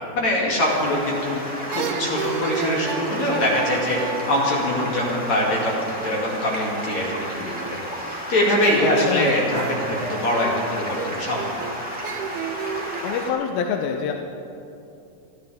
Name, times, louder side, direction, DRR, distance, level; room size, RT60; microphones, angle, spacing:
voice 1, 0.0-1.4 1.7-11.5, left 1 dB, 50° left, -4 dB, 3.7 m, -23 dB
Stream, 0.6-13.3, equal, 5° right, 1.3 m, -33 dB
sound 1, 1.7-5.4 8.6-13.0, right 7 dB, 80° right, 2.7 m, -32 dB
voice 2, 9.0-9.4 13.0-14.1, left 7 dB, 75° left, 3 dB, 2.5 m, -26 dB
28.5 x 12.5 x 3.6 m, 2.7 s
omnidirectional pair, 4.5 m